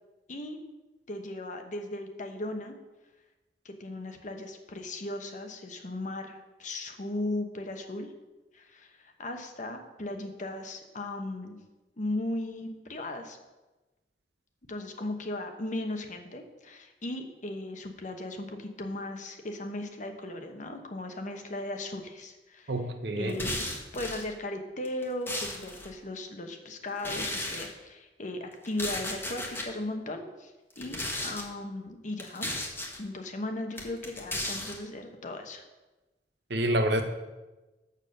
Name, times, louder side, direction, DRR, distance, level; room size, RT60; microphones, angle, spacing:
voice 1, 1.1-2.7 3.6-8.1 8.5-11.6 12.0-13.4 14.7-22.7 23.2-30.5 30.8-32.5 33.0-35.6, left 1 dB, 45° left, 5 dB, 1.0 m, -37 dB
voice 2, 22.7-23.5 36.5-37.0, right 1 dB, 70° right, 5 dB, 1.0 m, -28 dB
sound 1, 23.3-24.3 24.9-25.9 27.0-27.7 28.6-29.7 30.7-31.5 32.2-33.0 33.8-34.8, left 1 dB, 15° left, 1.3 m, -35 dB
7.0 x 6.7 x 6.5 m, 1.1 s
head